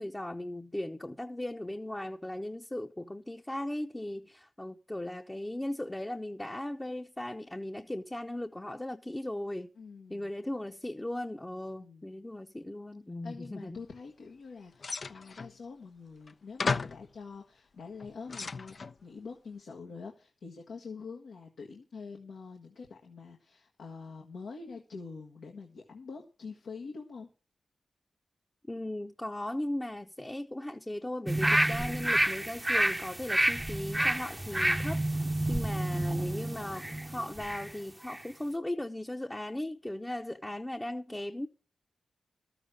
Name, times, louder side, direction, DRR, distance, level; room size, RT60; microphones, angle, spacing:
voice 1, 0.0-9.7 10.1-13.8 28.7-41.5, left 1 dB, 20° left, 0.9 m, -37 dB
voice 2, 9.7-10.3 11.8-12.0 13.2-18.7 19.0-27.3 35.4-36.1, left 4 dB, 80° left, 1.5 m, -45 dB
sound 1, 14.8-15.5 16.3-16.4 16.6-17.1 17.8-19.0, left 4 dB, 60° left, 0.6 m, -34 dB
sound 2, 31.3-37.7 38.1-38.2, right 1 dB, 15° right, 0.8 m, -29 dB
13.0 x 6.9 x 6.5 m
cardioid pair, 45°, 0 cm